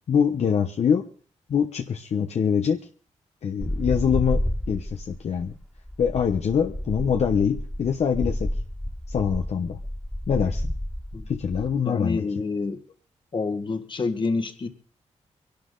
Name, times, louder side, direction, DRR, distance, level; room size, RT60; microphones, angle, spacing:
voice 1, 0.1-1.0 1.5-2.8 3.4-4.4 4.7-5.5 6.0-8.5 9.1-9.8 10.3-10.7 11.3-12.2, left 7 dB, 60° left, 1.0 m, -24 dB
sound 1, 3.6-11.7, equal, 5° left, 1.9 m, -30 dB
voice 2, 11.9-12.8 13.3-14.7, left 4 dB, 40° left, 1.7 m, -27 dB
24.5 x 12.0 x 3.9 m
wide cardioid pair, 145°, 12 cm